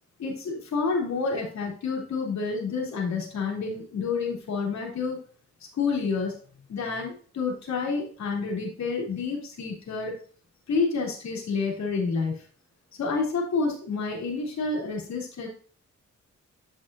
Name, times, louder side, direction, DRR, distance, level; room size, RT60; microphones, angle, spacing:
voice 1, 0.2-5.2 5.7-6.4 6.7-10.2 10.7-12.4 13.0-15.5, left 4 dB, 70° left, -1 dB, 3.5 m, -29 dB
9.8 x 6.2 x 2.7 m, 0.43 s
cardioid pair, 70°, 29 cm